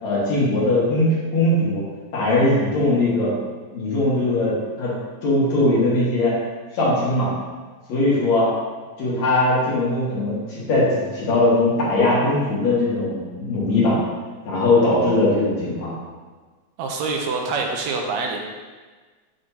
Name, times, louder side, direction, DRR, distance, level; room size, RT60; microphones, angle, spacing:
voice 1, 0.0-1.8 2.1-3.3 3.7-4.5 4.8-4.9 5.2-6.4 6.7-7.3 7.9-8.5 9.0-14.0 14.5-15.9, left 2 dB, 65° left, -6 dB, 2.9 m, -20 dB
voice 2, 16.8-18.4, right 4 dB, 75° right, 1 dB, 2.0 m, -25 dB
7.7 x 6.1 x 2.9 m, 1.4 s
omnidirectional pair, 3.3 m